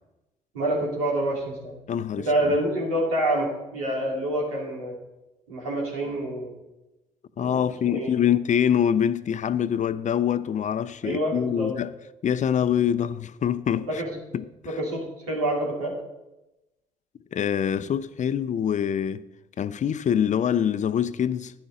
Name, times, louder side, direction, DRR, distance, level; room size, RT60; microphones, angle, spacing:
voice 1, 0.5-1.8 2.2-5.0 5.5-6.6 7.4-8.1 11.0-11.7 13.9-14.1 14.7-15.9, right 1 dB, 90° right, 2.6 m, -27 dB
voice 2, 1.9-2.3 7.4-11.9 12.2-14.0 14.3-14.7 17.3-19.2 19.6-21.5, left 9 dB, 45° left, 0.6 m, -25 dB
11.5 x 9.4 x 3.8 m
hypercardioid pair, 50°, 18 cm